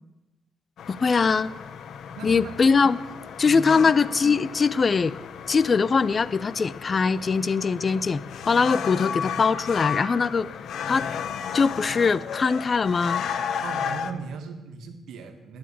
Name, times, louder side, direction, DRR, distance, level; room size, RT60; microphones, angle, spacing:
sound 1, 0.8-14.1, left 7 dB, 75° left, 0.7 m, -34 dB
voice 1, 0.9-1.5 2.2-3.0 3.4-5.2 5.5-10.5 10.9-11.1 11.5-13.2, left 5 dB, 40° left, 18 dB, 0.4 m, -22 dB
voice 2, 2.1-2.5 3.5-3.9 13.6-15.6, right 5 dB, 85° right, 5 dB, 1.7 m, -37 dB
11.0 x 8.8 x 8.5 m, 1.1 s
cardioid pair, 95°, 0 cm